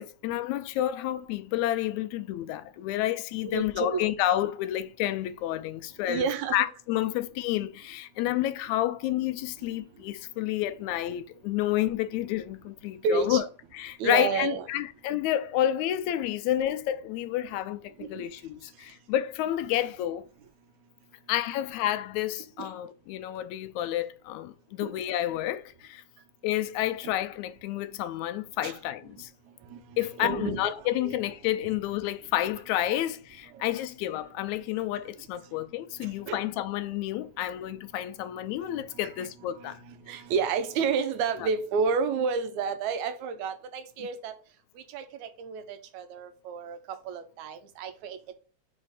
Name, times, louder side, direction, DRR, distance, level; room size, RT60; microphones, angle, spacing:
voice 1, 0.0-6.3 6.5-13.5 13.7-20.3 21.3-26.0 26.4-29.3 30.0-39.8 41.4-41.5 44.0-44.1, left 13 dB, 85° left, 1.9 m, -30 dB
voice 2, 3.4-4.2 6.1-6.7 13.0-13.4 14.0-14.7 18.0-18.2 22.6-22.7 24.8-24.9 28.6-28.7 29.7-31.2 33.5-33.8 36.0-36.4 38.7-39.3 39.6-44.3 44.9-48.3, right 5 dB, 85° right, 2.1 m, -31 dB
5.1 x 4.3 x 4.8 m
omnidirectional pair, 3.3 m